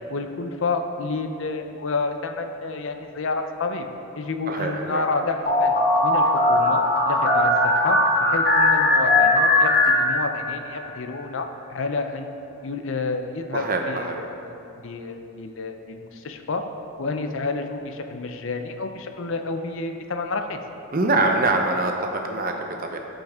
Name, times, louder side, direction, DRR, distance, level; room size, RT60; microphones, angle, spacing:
voice 1, 0.1-3.9 4.2-5.8 6.0-9.7 10.0-12.3 12.6-16.6 17.0-20.6, left 3 dB, 60° left, 6 dB, 0.6 m, -29 dB
voice 2, 4.5-5.1 13.5-14.2 20.9-23.0, right 2 dB, 40° right, 3 dB, 0.7 m, -24 dB
sound 1, 5.5-10.6, left 2 dB, 45° left, 1.3 m, -19 dB
15.0 x 5.2 x 3.6 m, 2.8 s
head